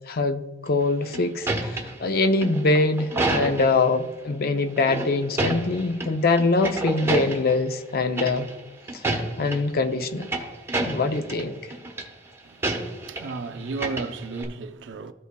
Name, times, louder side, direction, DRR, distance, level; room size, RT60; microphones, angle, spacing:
voice 1, 0.1-8.5 8.9-9.0 9.4-10.3 10.9-11.6, left 3 dB, 55° left, 0.5 m, -23 dB
sound 1, 0.8-3.9 4.8-6.1 6.4-7.6 8.2-8.6 8.9-9.6 10.0-11.4 11.7-12.0 12.6-13.4 13.7-14.4, right 2 dB, 15° right, 0.9 m, -28 dB
voice 2, 12.4-15.1, right 4 dB, 75° right, 0.5 m, -34 dB
14.0 x 5.5 x 2.2 m
head